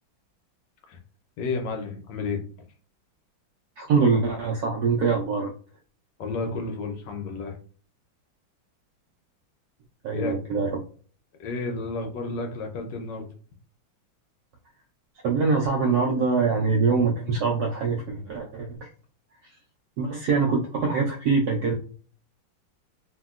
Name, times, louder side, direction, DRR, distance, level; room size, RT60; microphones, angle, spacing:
voice 1, 1.4-2.4 6.2-7.5 10.1-10.4 11.4-13.3, left 3 dB, 75° left, 4 dB, 1.1 m, -31 dB
voice 2, 3.8-5.5 10.0-10.8 15.2-18.9 19.4-19.5 20.0-21.7, right 4 dB, 75° right, 0 dB, 0.8 m, -24 dB
2.8 x 2.7 x 2.3 m, 0.42 s
omnidirectional pair, 2.2 m